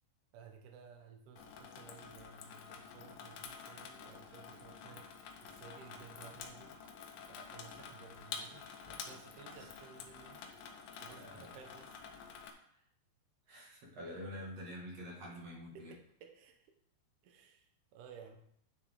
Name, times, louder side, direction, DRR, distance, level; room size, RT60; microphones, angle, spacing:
voice 1, 0.3-5.1 5.4-6.8 7.3-10.4 11.0-12.0 15.7-16.7 17.2-18.4, right 7 dB, 85° right, 4 dB, 1.8 m, -56 dB
Water tap faucet / Sink (filling or washing), 1.4-12.5, left 6 dB, 75° left, 2.1 m, -49 dB
voice 2, 11.1-11.5 12.7-12.8 13.5-15.9, equal, 45° right, -3 dB, 2.4 m, -47 dB
9.8 x 7.2 x 3.7 m, 0.68 s
omnidirectional pair, 4.9 m